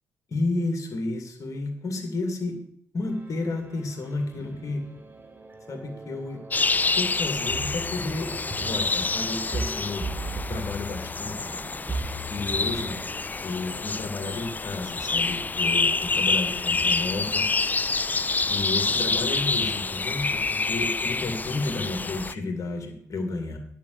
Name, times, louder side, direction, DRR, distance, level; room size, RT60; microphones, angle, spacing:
voice 1, 0.3-2.6 2.9-4.8 5.7-6.4 6.9-10.0 10.5-11.3 12.3-13.0 13.4-17.5 18.5-23.6, left 3 dB, 40° left, 4 dB, 2.5 m, -31 dB
sound 1, 3.0-13.2, right 2 dB, 25° right, 1.7 m, -38 dB
sound 2, 6.5-22.3, left 4 dB, 20° left, 0.4 m, -27 dB
10.5 x 5.3 x 8.1 m, 0.65 s
figure-of-eight pair, 40°, 8 cm